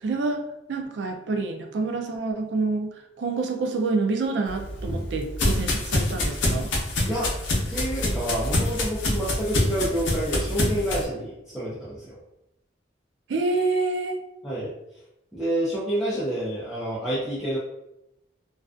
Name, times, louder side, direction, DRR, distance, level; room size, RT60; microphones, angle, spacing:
voice 1, 0.0-0.4 0.7-6.7 13.3-14.2, right 3 dB, 70° right, 5 dB, 0.4 m, -27 dB
sound 1, 4.5-11.0, left 1 dB, 80° left, 0.6 m, -26 dB
voice 2, 7.0-12.2 14.4-14.7 15.3-17.6, right 1 dB, ahead, -11 dB, 0.5 m, -28 dB
2.3 x 2.3 x 2.4 m, 0.86 s
head